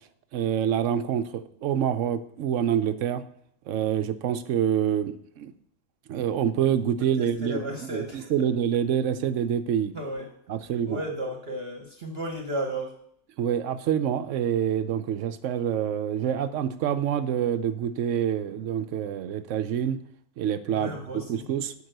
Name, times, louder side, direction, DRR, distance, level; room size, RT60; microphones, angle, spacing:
voice 1, 0.3-3.2 3.7-5.5 6.1-9.9 10.5-11.0 13.4-20.0 20.4-21.0 21.3-21.7, right 9 dB, 65° right, 12 dB, 0.9 m, -26 dB
voice 2, 7.0-8.3 9.9-10.3 10.9-12.9 20.7-21.4, right 1 dB, 45° right, 4 dB, 1.1 m, -34 dB
7.8 x 5.4 x 6.6 m, 0.67 s
omnidirectional pair, 1.5 m